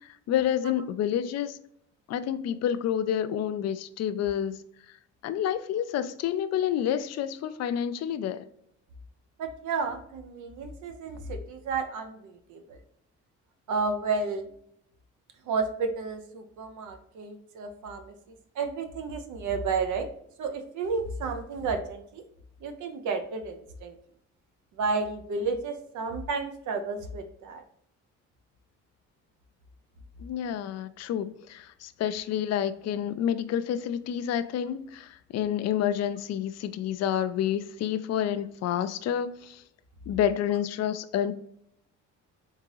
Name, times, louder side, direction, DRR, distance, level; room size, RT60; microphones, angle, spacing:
voice 1, 0.0-1.6 2.1-5.0 5.2-8.5 30.2-39.6 40.1-41.3, left 9 dB, 60° left, 0.4 m, -29 dB
voice 2, 9.4-12.8 13.7-14.5 15.5-18.1 18.6-20.1 20.4-22.2 22.6-24.0 24.8-27.6, right 4 dB, 75° right, 0.9 m, -32 dB
3.7 x 3.6 x 3.0 m
cardioid pair, 90°, 30 cm